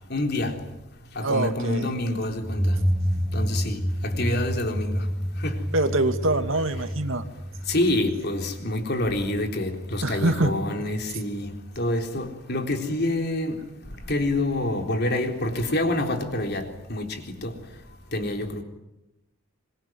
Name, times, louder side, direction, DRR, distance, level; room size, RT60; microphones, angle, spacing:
voice 1, 0.1-0.6 1.1-2.8 3.3-5.1 5.4-5.7 7.7-13.6 14.1-17.6 18.1-18.6, left 1 dB, 50° left, 3.9 m, -27 dB
voice 2, 1.2-1.9 5.7-7.2 10.0-10.5, right 2 dB, 65° right, 2.5 m, -24 dB
sound 1, 2.4-9.0, equal, ahead, 1.1 m, -28 dB
26.0 x 23.0 x 9.4 m
head